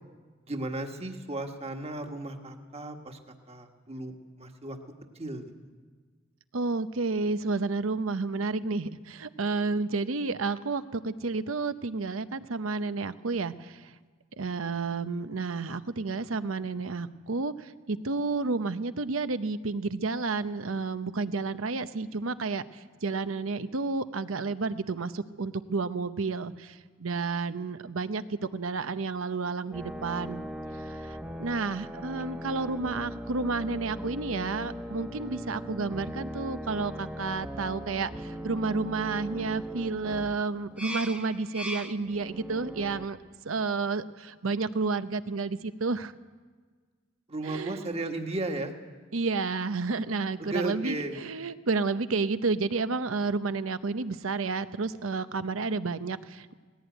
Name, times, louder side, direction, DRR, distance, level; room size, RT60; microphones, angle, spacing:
voice 1, 0.4-3.2 3.5-4.8 5.1-5.5 47.3-48.7 50.4-51.2, right 2 dB, 30° right, 4 dB, 1.6 m, -35 dB
voice 2, 6.5-13.9 14.4-30.4 30.8-43.2 43.4-46.1 47.4-47.8 49.1-56.5, right 3 dB, 85° right, 12 dB, 0.8 m, -31 dB
sound 1, 29.7-43.1, equal, 5° right, 0.9 m, -39 dB
18.5 x 16.5 x 9.1 m, 1.5 s
head